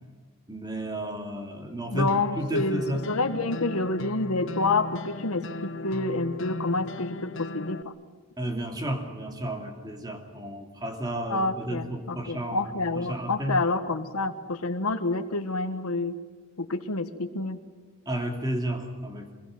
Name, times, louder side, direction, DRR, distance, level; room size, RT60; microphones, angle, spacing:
voice 1, 0.5-3.1 8.4-13.6 18.1-19.3, right 1 dB, 20° right, 4 dB, 2.7 m, -32 dB
voice 2, 1.9-7.9 11.3-16.2 16.6-17.6, left 3 dB, 80° left, 7 dB, 1.4 m, -28 dB
sound 1, 2.1-7.8, left 3 dB, 55° left, 0.7 m, -37 dB
25.0 x 21.5 x 7.7 m, 1.5 s
head